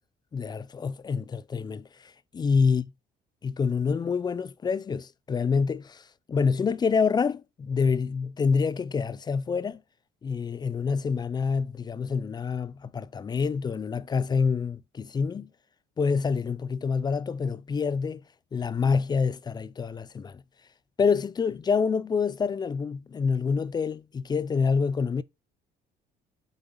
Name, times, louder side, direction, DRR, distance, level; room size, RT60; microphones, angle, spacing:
voice 1, 0.3-1.9 2.3-2.9 3.4-6.0 6.3-9.8 10.2-15.5 16.0-18.2 18.5-20.4 21.0-25.2, left 5 dB, 25° left, 0.4 m, -27 dB
8.0 x 3.8 x 3.7 m
cardioid pair, 110°, 17 cm